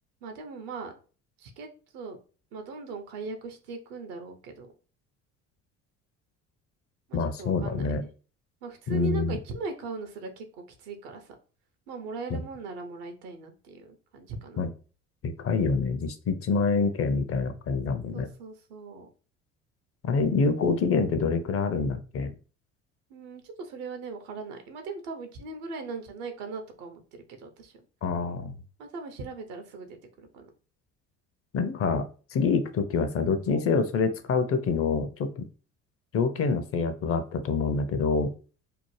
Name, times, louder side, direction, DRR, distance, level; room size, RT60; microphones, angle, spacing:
voice 1, 0.2-0.9 1.4-1.7 1.9-2.2 2.5-4.7 7.1-8.1 8.6-10.5 10.8-11.3 11.9-14.6 18.1-19.1 23.1-27.0 27.3-27.7 28.8-30.5, right 4 dB, 75° right, 6 dB, 0.7 m, -39 dB
voice 2, 7.1-8.0 8.9-9.4 12.3-12.4 14.6-14.7 15.2-18.3 20.0-22.3 28.0-28.5 31.5-35.4 36.1-38.3, left 4 dB, 40° left, 9 dB, 0.5 m, -26 dB
2.8 x 2.1 x 3.1 m, 0.38 s
hypercardioid pair, 60°, 36 cm